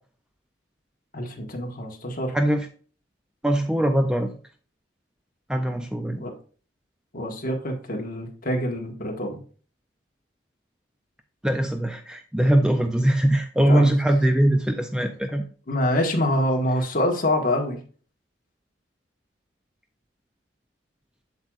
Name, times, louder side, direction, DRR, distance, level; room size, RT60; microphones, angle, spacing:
voice 1, 1.1-2.4 6.2-6.3 7.1-9.4 13.6-13.9 15.7-17.8, left 1 dB, 45° left, 2 dB, 1.4 m, -25 dB
voice 2, 2.3-2.7 3.4-4.3 5.5-6.2 11.4-15.4, right 1 dB, 5° right, 6 dB, 0.4 m, -21 dB
7.9 x 7.5 x 2.4 m, 0.41 s
head